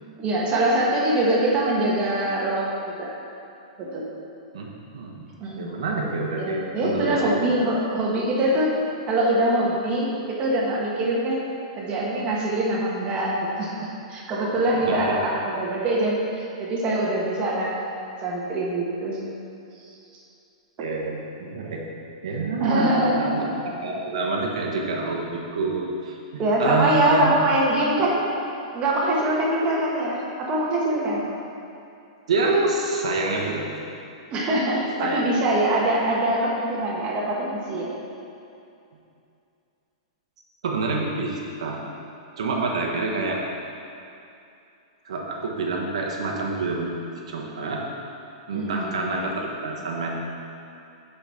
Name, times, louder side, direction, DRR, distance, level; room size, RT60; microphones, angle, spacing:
voice 1, 0.2-2.7 3.0-3.1 3.8-4.1 5.4-5.7 6.3-8.7 9.1-11.4 11.7-17.8 18.2-19.2 19.9-20.0 22.6-23.4 26.4-28.2 28.7-31.3 34.3-37.9 48.5-49.1, right 1 dB, 30° right, -4 dB, 1.5 m, -23 dB
voice 2, 4.5-5.2 5.6-7.4 14.8-15.1 20.8-21.9 22.2-27.3 32.3-33.8 35.0-35.2 40.6-41.9 42.4-43.4 45.0-46.9 47.3-47.8 48.5-50.1, right 3 dB, 75° right, -2 dB, 1.2 m, -27 dB
7.1 x 5.1 x 5.8 m, 2.6 s
hypercardioid pair, 135°, 3 cm